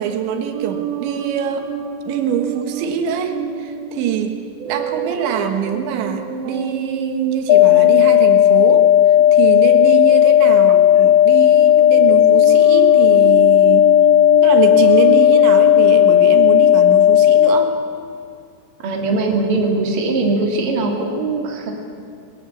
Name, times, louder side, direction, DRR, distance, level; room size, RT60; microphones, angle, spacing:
voice 1, 0.0-1.7 2.1-4.4 4.7-13.9 14.4-17.8, right 8 dB, 85° right, 6 dB, 3.8 m, -24 dB
sound 1, 0.5-9.9 10.7-11.0 11.3-17.0, right 7 dB, 70° right, 2.6 m, -28 dB
sound 2, 7.5-17.5, left 11 dB, 80° left, 2.4 m, -12 dB
voice 2, 18.8-21.7, right 3 dB, 35° right, 1 dB, 3.0 m, -20 dB
21.5 x 20.0 x 8.6 m, 2.5 s
omnidirectional pair, 5.1 m